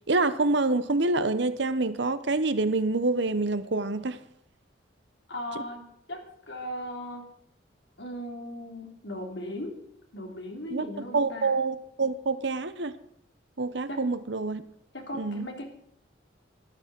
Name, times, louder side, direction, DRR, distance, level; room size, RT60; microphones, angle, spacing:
voice 1, 0.1-4.2 5.5-5.6 10.7-12.9 13.6-14.6 15.1-15.5, right 3 dB, 65° right, 1.0 m, -27 dB
voice 2, 5.3-7.3 8.0-9.8 10.1-11.5 13.9-14.0 14.9-15.7, left 1 dB, 65° left, 3.2 m, -38 dB
13.0 x 12.0 x 6.1 m
head